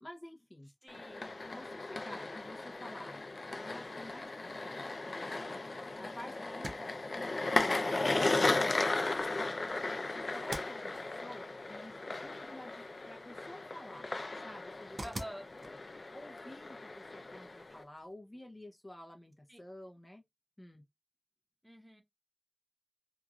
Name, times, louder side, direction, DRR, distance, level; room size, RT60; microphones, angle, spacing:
voice 1, 0.0-0.7 1.5-5.7 6.0-9.0 9.8-14.1 14.4-15.0 15.6-15.8 16.1-20.2 20.6-20.8, left 1 dB, 30° left, 0.6 m, -51 dB
voice 2, 0.8-1.4 15.0-15.5 19.5-19.6 21.6-22.0, equal, 10° right, 0.9 m, -47 dB
sound 1, 0.9-17.8, left 2 dB, 90° left, 0.4 m, -36 dB
sound 2, 13.7-18.1, right 1 dB, 80° right, 0.6 m, -51 dB
3.0 x 2.4 x 2.4 m
wide cardioid pair, 40°, 0 cm